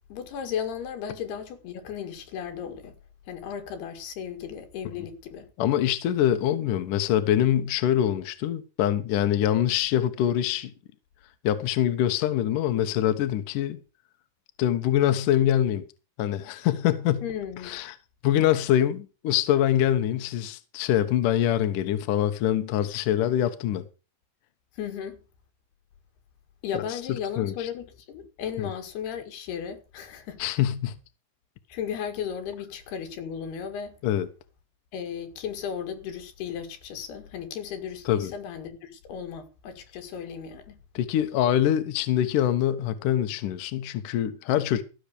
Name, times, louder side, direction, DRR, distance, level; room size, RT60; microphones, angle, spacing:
voice 1, 0.1-3.0 3.3-5.5 17.2-17.7 24.7-25.2 26.6-30.4 31.7-34.0 34.9-40.8, left 8 dB, 85° left, 4.0 m, -35 dB
voice 2, 5.6-10.7 11.4-13.8 14.6-15.8 16.2-17.2 17.6-17.9 18.2-23.8 26.7-26.8 27.4-27.7 28.6-28.7 30.4-31.0 34.0-34.3 38.1-38.3 41.0-44.8, left 11 dB, 65° left, 2.4 m, -24 dB
15.0 x 7.0 x 6.7 m
omnidirectional pair, 4.5 m